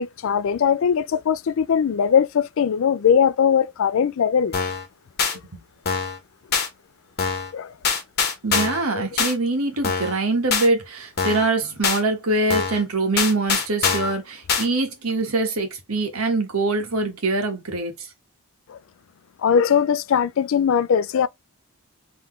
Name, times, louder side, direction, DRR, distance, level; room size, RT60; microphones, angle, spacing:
voice 1, 0.0-4.5 7.5-7.7 8.9-9.1 18.7-18.8 19.4-21.3, left 7 dB, 65° left, 0.3 m, -20 dB
sound 1, 4.5-4.8 5.2-5.3 5.9-6.2 6.5-6.7 7.2-7.5 7.8-8.8 9.2-9.3 9.8-10.2 10.5-10.7 11.2-11.5 11.8-12.0 12.5-12.8 13.2-14.1 14.5-14.7, left 5 dB, 50° left, 1.3 m, -23 dB
voice 2, 8.4-17.9, right 2 dB, 80° right, 1.4 m, -23 dB
3.9 x 3.2 x 3.1 m
head